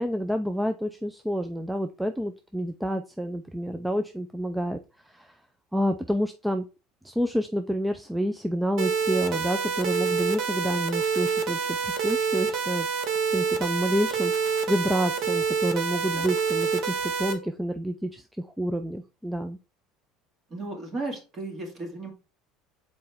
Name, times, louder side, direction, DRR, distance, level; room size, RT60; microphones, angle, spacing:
voice 1, 0.0-4.8 5.1-5.4 5.7-6.6 7.0-12.9 13.3-19.6, equal, 5° right, 7 dB, 0.4 m, -28 dB
sound 1, 8.8-17.3, right 6 dB, 55° right, 1.2 m, -27 dB
voice 2, 20.5-22.1, right 2 dB, 30° right, 2 dB, 2.0 m, -35 dB
6.7 x 4.3 x 3.5 m, 0.32 s
cardioid pair, 140°, 0 cm